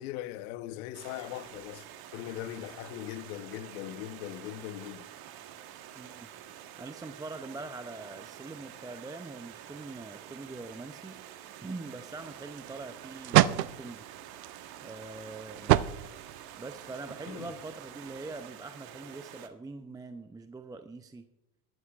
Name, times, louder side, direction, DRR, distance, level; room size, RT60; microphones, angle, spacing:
voice 1, 0.0-5.1 17.3-17.5, left 13 dB, 65° left, 1.0 m, -40 dB
Stream, 0.9-19.5, right 10 dB, 50° right, 1.3 m, -48 dB
voice 2, 5.9-6.3 6.8-11.2 11.6-14.1 14.8-15.9 16.6-21.3, right 3 dB, 10° right, 0.5 m, -43 dB
sound 1, 12.2-18.5, right 14 dB, 85° right, 0.6 m, -31 dB
21.0 x 13.0 x 2.4 m
hypercardioid pair, 75°, 48 cm